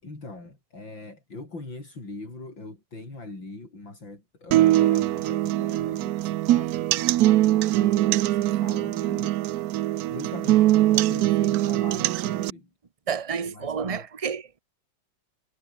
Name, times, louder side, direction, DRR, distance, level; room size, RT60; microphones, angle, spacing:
voice 1, 0.0-12.7 13.4-14.1, left 2 dB, 75° left, 7.6 m, -42 dB
sound 1, 4.5-12.5, right 15 dB, 75° right, 0.9 m, -22 dB
voice 2, 13.1-14.6, right 6 dB, 25° right, 0.9 m, -30 dB
omnidirectional pair, 2.1 m